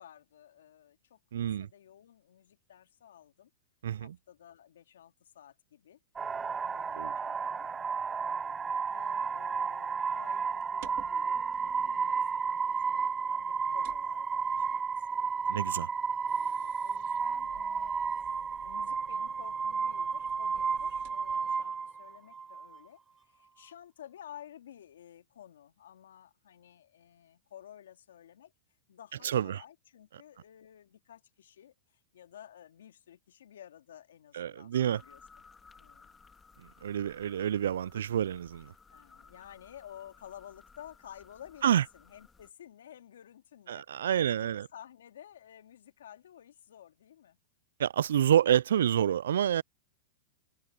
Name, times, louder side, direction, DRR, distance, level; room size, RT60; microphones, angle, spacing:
voice 1, 0.0-3.5 3.9-6.0 6.4-7.7 8.2-15.6 16.2-18.0 18.6-28.5 28.9-35.4 35.8-36.1 37.1-37.4 38.9-47.4, left 10 dB, 80° left, 2.4 m, -53 dB
voice 2, 1.3-1.7 3.8-4.1 7.0-7.1 15.5-15.9 29.2-29.6 34.3-35.0 36.8-38.7 41.6-41.8 43.7-44.7 47.8-49.6, right 10 dB, 80° right, 0.3 m, -28 dB
sound 1, 6.2-22.8, right 5 dB, 15° right, 0.5 m, -32 dB
sound 2, 10.1-21.5, right 23 dB, 55° right, 2.2 m, -58 dB
sound 3, 34.7-42.5, left 4 dB, 15° left, 3.6 m, -58 dB
hypercardioid pair, 115°, 0 cm